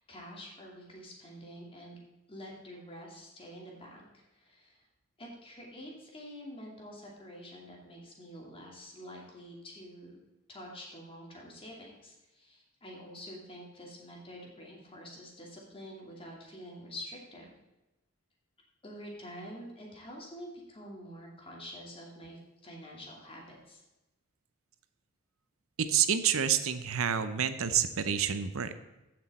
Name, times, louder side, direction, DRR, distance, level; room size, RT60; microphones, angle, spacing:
voice 1, 0.0-2.0 2.3-4.8 5.2-10.2 10.5-17.5 18.8-23.8, equal, 25° left, -2 dB, 2.6 m, -47 dB
voice 2, 25.8-28.8, right 8 dB, 80° right, 11 dB, 0.7 m, -28 dB
15.0 x 6.2 x 4.2 m, 1.0 s
head